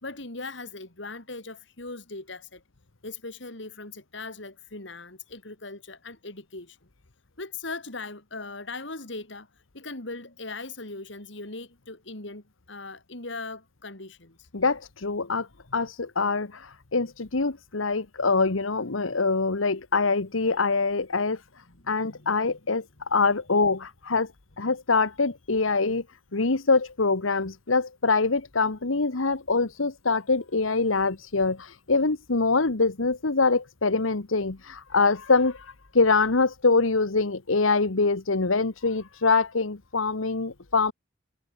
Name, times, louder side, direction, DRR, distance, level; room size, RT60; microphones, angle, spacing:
voice 1, 0.0-2.6 3.0-6.8 7.4-9.5 9.7-14.5 21.7-22.4, left 3 dB, 65° left, 3.1 m, -39 dB
voice 2, 14.5-15.5 15.7-21.4 21.9-22.8 23.1-24.3 24.6-26.0 26.3-35.6 35.9-40.9, left 4 dB, 85° left, 1.3 m, -24 dB
head